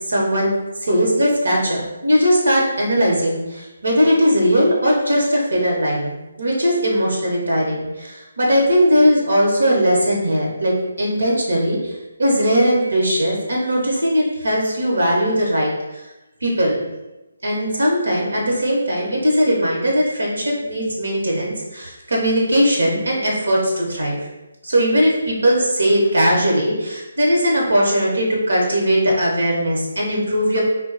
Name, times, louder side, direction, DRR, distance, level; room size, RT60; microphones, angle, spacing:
voice 1, 0.1-0.5 0.8-16.0 16.4-16.9 17.4-24.2 24.6-30.6, equal, 85° right, -2 dB, 0.9 m, -19 dB
2.3 x 2.2 x 3.9 m, 1.0 s
hypercardioid pair, 165°, 0 cm